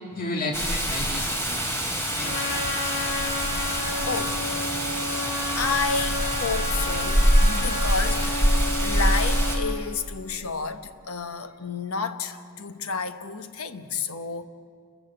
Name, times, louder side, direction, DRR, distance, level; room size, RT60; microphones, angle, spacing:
voice 1, 0.1-2.4, left 2 dB, 40° left, 2.0 m, -33 dB
Rain, 0.5-9.6, equal, 10° left, 2.9 m, -25 dB
Trumpet, 2.2-9.8, left 3 dB, 60° left, 2.6 m, -32 dB
voice 2, 4.1-4.7 5.5-14.5, left 4 dB, 75° left, 1.1 m, -31 dB
28.5 x 14.5 x 7.9 m
head